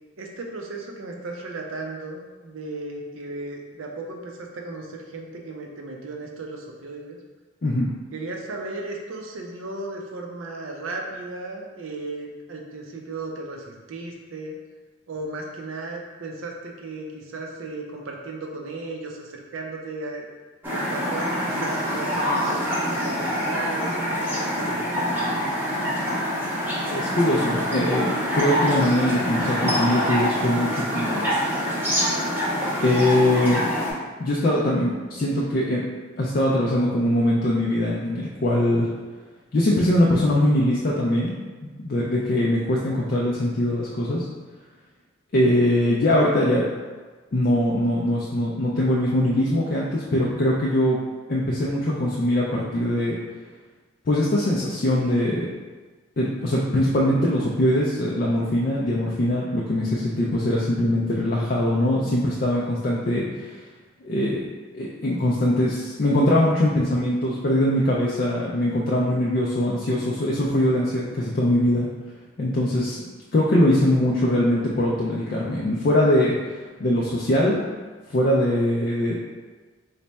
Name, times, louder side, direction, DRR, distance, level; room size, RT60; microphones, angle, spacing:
voice 1, 0.2-7.2 8.1-14.6 15.1-20.3 20.7-25.5, right 2 dB, 80° right, 1 dB, 0.5 m, -35 dB
sound 1, 20.6-33.9, equal, 10° right, 0.6 m, -25 dB
voice 2, 26.9-31.3 32.8-33.6 34.2-35.8 36.2-38.9 39.5-41.4 41.6-44.2 45.3-46.6 47.3-51.0 51.3-53.2 54.1-55.5 56.2-63.6 64.0-64.4 64.7-71.9 72.4-73.0 73.3-77.6 78.1-79.2, left 1 dB, 45° left, -5 dB, 0.4 m, -22 dB
3.2 x 2.2 x 4.0 m, 1.4 s
head